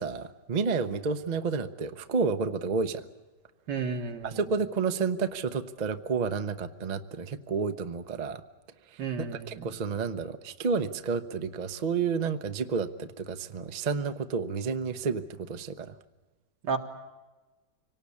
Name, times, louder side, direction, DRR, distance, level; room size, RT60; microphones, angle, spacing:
voice 1, 0.0-3.0 4.2-8.4 8.9-9.0 9.3-15.9, right 5 dB, 40° right, 9 dB, 0.6 m, -30 dB
voice 2, 3.7-4.4 9.0-9.7 16.6-16.8, right 5 dB, 80° right, 4 dB, 2.2 m, -32 dB
25.0 x 18.5 x 8.5 m, 1.2 s
omnidirectional pair, 1.8 m